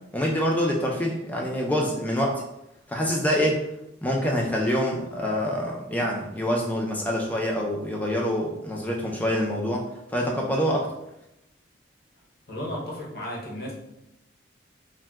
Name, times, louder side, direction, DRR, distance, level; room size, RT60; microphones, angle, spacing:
voice 1, 0.1-2.3 2.9-3.6 4.0-9.8 10.1-10.9, equal, 10° left, -1 dB, 0.3 m, -26 dB
voice 2, 12.5-13.7, left 1 dB, 50° left, -3 dB, 0.7 m, -34 dB
3.6 x 2.1 x 2.2 m, 0.86 s
head